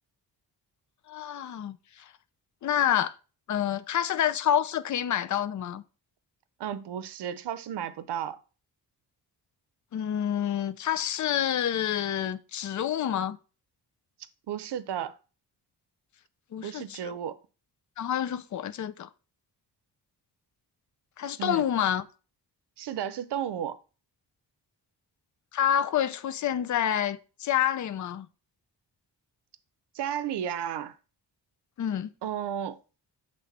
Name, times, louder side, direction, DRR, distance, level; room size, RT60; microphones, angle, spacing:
voice 1, 1.1-1.8 2.6-3.1 3.5-5.8 9.9-13.4 16.5-17.2 18.0-19.1 21.2-22.0 25.5-28.3 31.8-32.1, left 10 dB, 45° left, 0.5 m, -28 dB
voice 2, 6.6-8.4 14.5-15.2 16.6-17.4 21.4-21.7 22.8-23.8 29.9-31.0 32.2-32.8, right 9 dB, 70° right, 0.7 m, -33 dB
7.2 x 3.3 x 4.1 m
cardioid pair, 95°, 42 cm